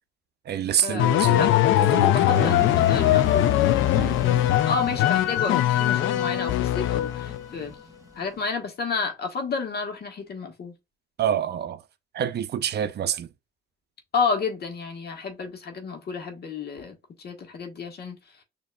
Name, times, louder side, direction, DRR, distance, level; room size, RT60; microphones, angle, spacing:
voice 1, 0.5-2.6 3.9-4.2 11.2-11.8 12.1-13.3, right 9 dB, 55° right, 0.6 m, -27 dB
sound 1, 1.0-7.5, left 13 dB, 80° left, 0.4 m, -21 dB
voice 2, 2.1-7.8 8.2-10.7 14.1-16.9 17.2-18.2, left 4 dB, 55° left, 1.3 m, -31 dB
sound 2, 2.3-8.4, left 1 dB, 15° right, 2.0 m, -38 dB
6.6 x 2.8 x 2.3 m
cardioid pair, 90°, 20 cm